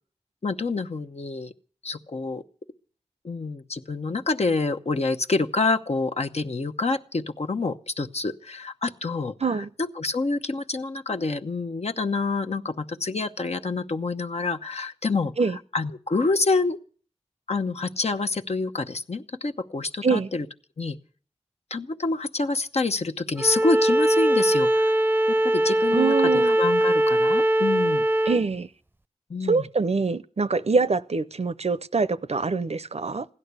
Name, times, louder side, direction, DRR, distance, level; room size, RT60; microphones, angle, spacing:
voice 1, 0.4-1.5 1.8-2.4 3.2-15.3 15.7-16.8 17.5-20.5 20.8-21.0 21.7-24.9 25.3-28.1 29.3-29.6, left 3 dB, 65° left, 0.9 m, -27 dB
Bowed string instrument, 23.4-28.4, right 1 dB, 15° right, 0.7 m, -21 dB
voice 2, 25.9-26.6 28.3-28.7 29.5-33.2, right 4 dB, 65° right, 0.7 m, -24 dB
16.0 x 11.0 x 8.2 m
wide cardioid pair, 45°, 12 cm